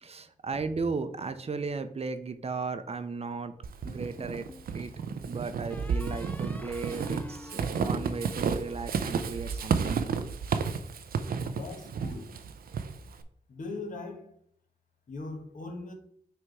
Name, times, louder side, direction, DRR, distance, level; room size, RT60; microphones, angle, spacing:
voice 1, 0.0-3.5 3.8-4.5 4.7-4.9 5.2-10.0, right 4 dB, 45° right, 0.6 m, -35 dB
Walk footsteps / Squeak, 3.6-13.2, right 6 dB, 90° right, 0.5 m, -32 dB
sound 1, 3.9-4.7 5.7-9.0, left 1 dB, 10° left, 0.5 m, -47 dB
voice 2, 11.5-12.3 13.5-14.3 15.1-15.9, left 3 dB, 65° left, 1.3 m, -40 dB
6.1 x 3.5 x 4.6 m
wide cardioid pair, 90°, 15 cm